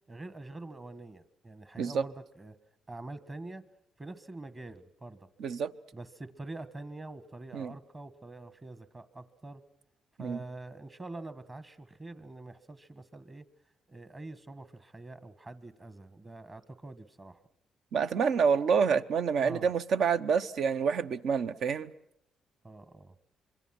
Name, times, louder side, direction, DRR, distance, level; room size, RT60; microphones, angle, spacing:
voice 1, 0.1-2.6 2.9-3.6 4.0-5.3 5.9-9.6 10.2-13.4 13.9-17.4 19.4-19.7 22.6-23.1, right 2 dB, 25° right, 13 dB, 1.6 m, -45 dB
voice 2, 5.4-5.7 7.5-7.7 10.2-10.4 17.9-21.9, right 6 dB, 65° right, 12 dB, 0.9 m, -27 dB
26.0 x 23.0 x 6.0 m, 0.77 s
cardioid pair, 90°, 0 cm